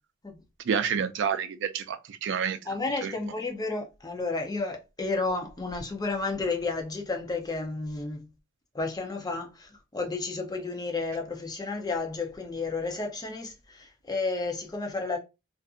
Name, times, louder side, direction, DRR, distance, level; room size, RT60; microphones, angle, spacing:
voice 1, 0.6-2.6 3.0-3.1, right 7 dB, 60° right, 0.3 m, -28 dB
voice 2, 2.7-8.3 8.7-15.2, left 3 dB, 20° left, 0.6 m, -32 dB
2.5 x 2.5 x 2.4 m
head